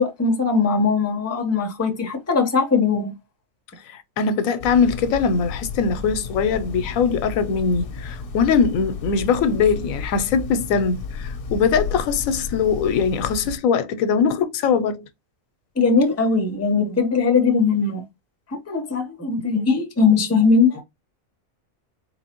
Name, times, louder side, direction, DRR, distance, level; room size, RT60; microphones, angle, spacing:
voice 1, 0.0-3.1 15.8-18.0 18.7-20.8, left 4 dB, 15° left, 0.6 m, -20 dB
voice 2, 3.9-15.1, left 6 dB, 90° left, 1.0 m, -21 dB
sound 1, 4.6-13.6, left 5 dB, 55° left, 0.8 m, -33 dB
4.3 x 3.0 x 2.9 m
omnidirectional pair, 1.4 m